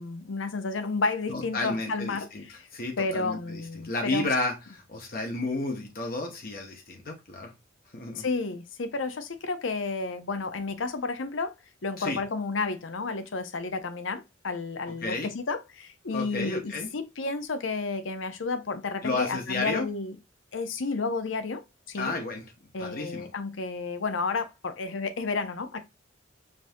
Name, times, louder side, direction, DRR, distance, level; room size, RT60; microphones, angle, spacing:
voice 1, 0.0-2.3 2.6-2.7 3.0-4.3 8.2-11.5 11.8-20.1 20.5-22.1 22.7-25.8, left 3 dB, 75° left, 0.7 m, -31 dB
voice 2, 1.3-2.4 2.7-7.5 7.9-8.3 12.0-12.2 15.0-15.3 16.1-16.9 19.0-19.9 21.9-22.4 22.8-23.3, left 2 dB, 50° left, 1.0 m, -32 dB
5.3 x 2.7 x 2.6 m
head